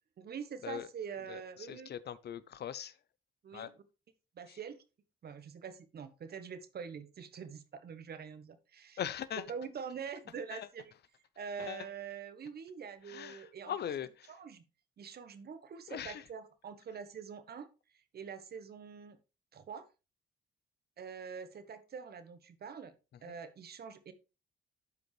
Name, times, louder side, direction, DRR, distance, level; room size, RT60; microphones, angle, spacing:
voice 1, 0.2-1.9 3.4-3.7 4.3-4.8 5.2-9.0 9.5-10.9 11.4-13.7 14.3-14.6 15.0-17.7 17.9-19.2 19.5-19.8 21.0-22.9 23.2-24.1, right 6 dB, 55° right, 1.2 m, -45 dB
voice 2, 1.3-3.0 3.5-3.7 4.5-4.6 9.0-9.4 10.5-10.7 11.6-11.9 13.1-14.3 15.9-16.2 23.3-23.4, left 9 dB, 55° left, 0.6 m, -41 dB
12.0 x 5.2 x 3.3 m
cardioid pair, 90°, 20 cm